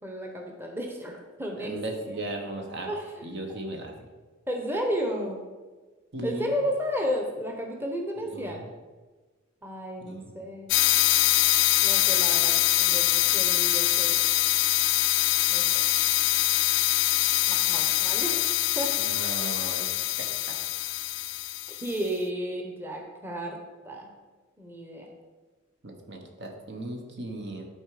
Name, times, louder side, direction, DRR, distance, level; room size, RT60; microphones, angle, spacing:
voice 1, 0.0-1.8 2.1-2.2 2.9-3.4 4.5-5.4 6.2-8.6 9.6-10.7 11.8-14.2 15.5-15.9 17.5-18.5 18.8-19.3 21.7-23.6 23.8-24.2 24.6-25.1, equal, 10° right, 1 dB, 0.9 m, -33 dB
voice 2, 1.6-2.9 3.2-4.1 6.1-6.5 8.2-8.7 10.0-10.3 19.0-19.8 20.2-20.6 20.8-20.9 25.8-27.7, right 1 dB, 60° right, 3 dB, 1.3 m, -37 dB
sound 1, 10.7-22.0, left 15 dB, 65° left, 0.4 m, -24 dB
11.5 x 4.5 x 4.9 m, 1.3 s
head